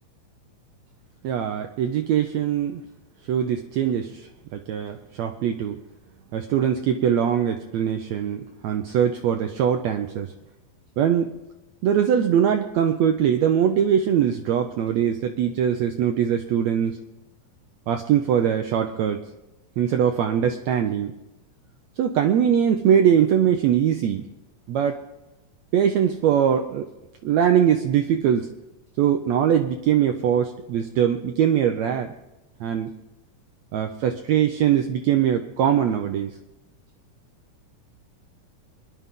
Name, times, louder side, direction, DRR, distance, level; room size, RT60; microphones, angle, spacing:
voice 1, 1.2-2.8 3.3-5.8 6.3-10.3 11.0-11.3 11.8-17.0 17.9-19.2 19.8-21.1 22.0-24.3 24.7-25.0 25.7-26.9 27.2-28.5 29.0-32.1 32.6-32.9 33.7-36.3, right 9 dB, 85° right, 6 dB, 1.5 m, -22 dB
24.0 x 11.0 x 3.7 m, 0.97 s
omnidirectional pair, 4.0 m